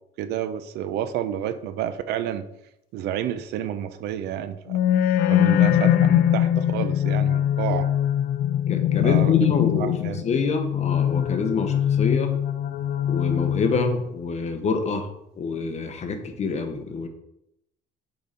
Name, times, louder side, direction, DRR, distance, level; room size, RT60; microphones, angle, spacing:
voice 1, 0.2-2.4 2.9-4.8 5.3-7.9 9.0-10.3, right 10 dB, 80° right, 12 dB, 0.6 m, -30 dB
sound 1, 4.7-14.0, left 10 dB, 70° left, 0.5 m, -22 dB
voice 2, 8.7-12.3 13.1-15.1 15.4-17.1, left 4 dB, 40° left, 6 dB, 1.0 m, -26 dB
6.7 x 3.9 x 4.3 m, 0.82 s
cardioid pair, 110°, 17 cm